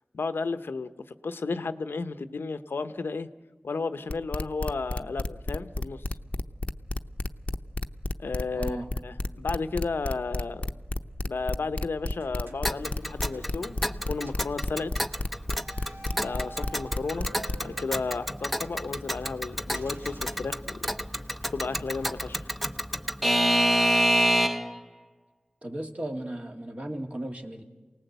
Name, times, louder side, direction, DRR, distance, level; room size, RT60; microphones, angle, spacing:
voice 1, 0.1-0.9 1.2-3.3 3.6-6.0 8.2-8.8 9.0-10.7 11.2-13.8 14.1-14.9 16.1-17.3 17.5-20.8 21.5-22.5, left 4 dB, 85° left, 11 dB, 0.8 m, -33 dB
sound 1, 4.1-17.6, left 2 dB, 35° left, 0.8 m, -30 dB
voice 2, 8.5-8.9 25.6-27.6, right 1 dB, 35° right, 3 dB, 2.2 m, -35 dB
sound 2, 12.1-14.0 14.2-14.6 15.6-18.8 19.7-21.1, right 1 dB, 85° right, 2.0 m, -49 dB
Alarm / Clock, 12.7-24.8, equal, ahead, 0.8 m, -28 dB
28.0 x 18.5 x 8.0 m, 1.4 s
cardioid pair, 45°, 4 cm